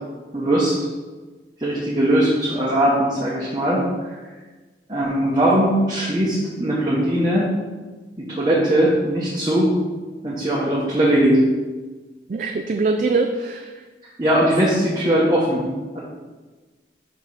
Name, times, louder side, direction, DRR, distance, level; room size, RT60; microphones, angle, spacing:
voice 1, 0.3-0.8 1.6-4.2 4.9-7.5 8.2-9.8 10.2-11.4 14.2-15.6 15.9-16.0, right 1 dB, 25° right, -7 dB, 1.0 m, -20 dB
voice 2, 12.3-13.7, right 3 dB, 45° right, 5 dB, 0.3 m, -22 dB
4.8 x 4.7 x 5.5 m, 1.3 s
head